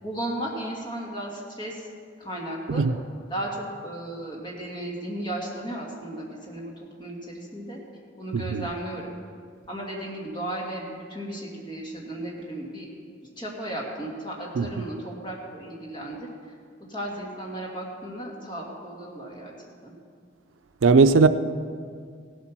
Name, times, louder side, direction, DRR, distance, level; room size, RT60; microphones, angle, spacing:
voice 1, 0.0-1.9 2.2-2.8 3.3-6.7 7.0-7.8 8.2-9.1 9.7-12.9 13.4-16.3 16.9-19.5 19.8-19.9, right 1 dB, 25° left, 2.4 m, -35 dB
voice 2, 20.8-21.3, right 4 dB, 85° right, 0.5 m, -17 dB
16.5 x 8.2 x 6.0 m
head